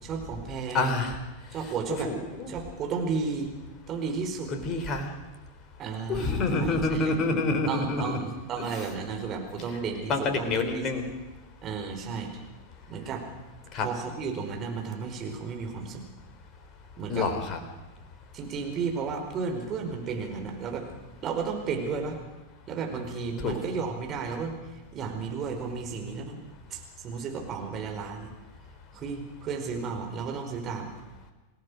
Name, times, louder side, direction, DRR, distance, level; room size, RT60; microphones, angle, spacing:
voice 1, 0.0-1.1 1.5-2.1 2.5-3.5 3.9-4.5 5.8-7.1 7.7-10.9 11.6-12.3 12.9-13.2 13.8-16.0 17.0-17.3 18.3-20.8 21.2-22.2 22.7-26.4 26.7-28.3 28.9-30.9, right 5 dB, 30° right, 3 dB, 4.8 m, -33 dB
voice 2, 0.7-1.2 1.6-2.5 4.5-5.1 6.1-8.2 8.6-8.9 9.7-9.8 10.1-11.0 13.7-13.9 17.1-17.6 23.4-23.5, left 3 dB, 30° left, 7 dB, 4.1 m, -28 dB
28.0 x 18.0 x 6.5 m, 1.1 s
figure-of-eight pair, 90°, 0 cm